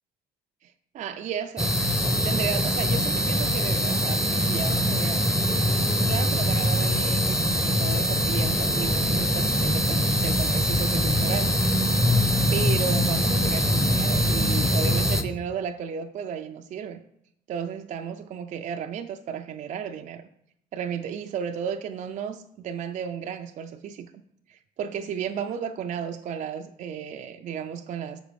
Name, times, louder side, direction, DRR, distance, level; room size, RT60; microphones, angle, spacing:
voice 1, 0.6-1.7 2.0-5.2 6.1-11.6 12.0-12.2 12.5-17.0 17.5-20.3 20.7-24.1 24.5-28.2, right 7 dB, 45° right, 5 dB, 0.4 m, -33 dB
sound 1, 1.6-15.2, equal, 5° right, 0.7 m, -23 dB
6.5 x 5.0 x 5.1 m, 0.74 s
cardioid pair, 110°, 17 cm